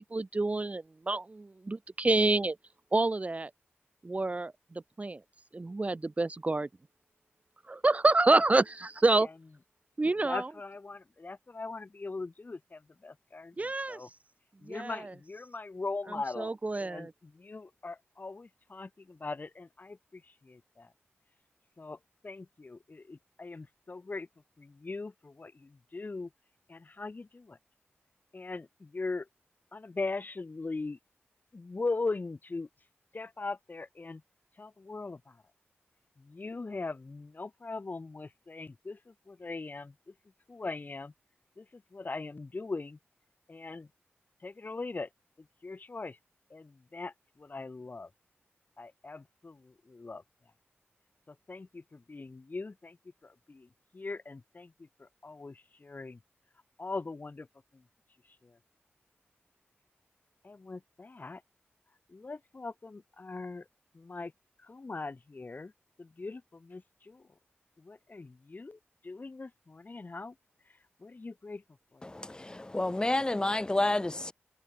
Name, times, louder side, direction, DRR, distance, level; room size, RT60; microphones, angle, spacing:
voice 1, 0.0-2.6 2.9-3.5 4.0-5.2 5.5-6.7 7.7-9.3 10.0-10.5 13.6-14.0 14.7-15.0 16.4-17.1, right 2 dB, 35° right, 0.9 m, -28 dB
voice 2, 10.2-14.1 14.6-20.9 21.8-24.3 24.6-26.3 26.7-27.6 28.3-29.3 29.7-31.0 31.5-32.7 33.1-34.2 34.6-35.4 36.2-40.1 40.5-41.1 41.6-43.0 43.5-43.9 44.4-45.1 45.4-46.2 46.5-48.1 48.8-50.2 51.3-53.0 53.2-56.2 56.8-57.5 57.7-57.8 58.3-58.6 60.4-61.4 62.1-63.7 63.9-64.3 64.6-65.7 66.0-67.3 67.8-70.3 71.0-71.6 71.9-72.0 72.3-72.6, left 3 dB, 45° left, 2.6 m, -40 dB
voice 3, 72.0-74.3, left 2 dB, 20° left, 0.4 m, -30 dB
wide cardioid pair, 70°, 4 cm